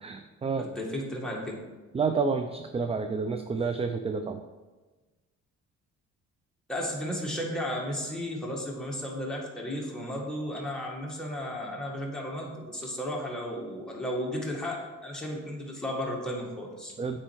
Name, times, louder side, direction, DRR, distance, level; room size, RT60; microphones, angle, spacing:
voice 1, 0.0-0.7 1.9-4.4 17.0-17.2, right 5 dB, 20° right, 7 dB, 0.4 m, -29 dB
voice 2, 0.6-1.6 6.7-16.9, equal, ahead, -3 dB, 2.0 m, -34 dB
8.6 x 4.4 x 4.7 m, 1.3 s
cardioid pair, 90°, 30 cm